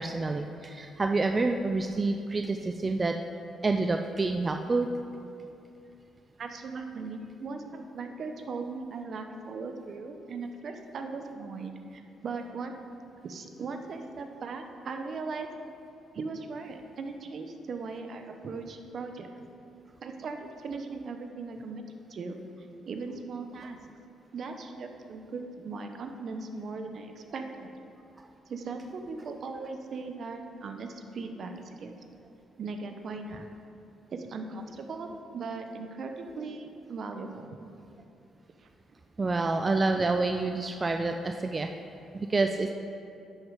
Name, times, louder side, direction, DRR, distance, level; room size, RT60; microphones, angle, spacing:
voice 1, 0.0-3.2 3.6-4.9 39.2-41.7 42.1-42.7, right 3 dB, 30° right, 5 dB, 0.4 m, -28 dB
voice 2, 6.4-12.7 13.2-15.5 16.1-19.3 20.0-22.4 22.9-23.8 24.3-27.7 28.5-31.9 32.6-33.5 34.1-37.5 38.6-38.7, right 4 dB, 55° right, 5 dB, 0.9 m, -38 dB
10.5 x 6.5 x 4.9 m, 2.7 s
cardioid pair, 90°, 0 cm